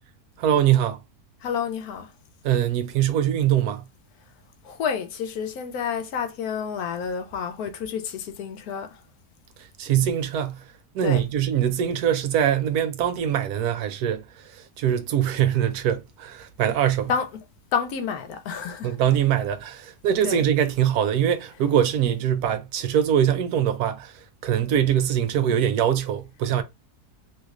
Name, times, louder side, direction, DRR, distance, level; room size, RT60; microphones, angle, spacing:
voice 1, 0.4-1.0 2.4-3.8 9.8-10.6 10.9-14.2 14.5-17.1 18.8-24.1 24.4-26.6, right 10 dB, 75° right, 1.0 m, -23 dB
voice 2, 1.4-2.1 4.6-9.0 11.0-11.2 17.1-17.3 17.7-19.0 20.2-20.4, left 7 dB, 75° left, 1.0 m, -29 dB
3.1 x 3.1 x 2.4 m
omnidirectional pair, 1.7 m